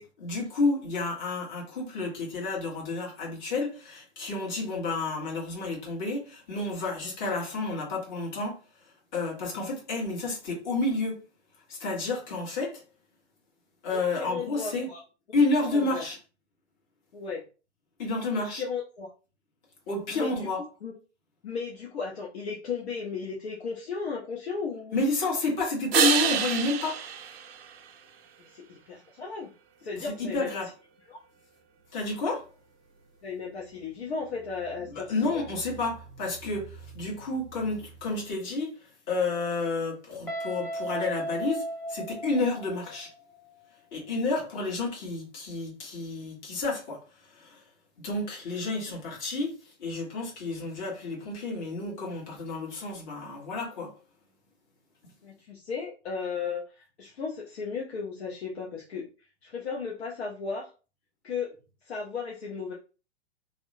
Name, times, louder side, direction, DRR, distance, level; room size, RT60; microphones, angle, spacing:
voice 1, 0.2-8.6 9.1-11.2 11.7-12.8 13.8-14.9 15.3-16.2 18.0-18.6 19.9-20.6 24.9-27.0 29.9-30.7 31.9-32.5 34.9-38.8 39.1-43.1 43.9-47.6 48.0-53.9, left 3 dB, 40° left, 1.3 m, -30 dB
voice 2, 13.9-15.0 15.7-16.0 17.1-17.4 18.4-19.1 20.1-20.5 20.8-20.9 21.4-24.9 28.4-29.5 29.8-30.6 31.1-31.2 33.2-35.4 55.2-59.0 59.4-60.7 61.2-61.5 61.8-62.7, left 5 dB, 65° left, 0.7 m, -35 dB
sound 1, 25.9-28.5 34.2-38.2, right 8 dB, 60° right, 0.5 m, -32 dB
Guitar, 40.3-43.1, right 1 dB, 10° left, 0.5 m, -35 dB
2.7 x 2.1 x 2.6 m
figure-of-eight pair, 105°, 35 cm